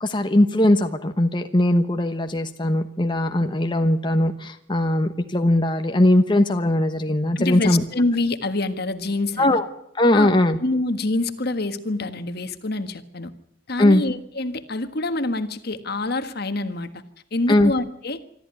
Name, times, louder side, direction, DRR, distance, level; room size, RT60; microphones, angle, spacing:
voice 1, 0.0-7.8 9.4-9.7 9.9-10.6 13.8-14.0 17.5-17.7, left 1 dB, 25° left, 6 dB, 1.2 m, -19 dB
voice 2, 7.3-9.6 10.1-10.3 10.6-13.3 13.7-17.0 17.3-18.2, left 2 dB, 55° left, 10 dB, 1.6 m, -26 dB
25.0 x 14.0 x 9.8 m, 0.73 s
head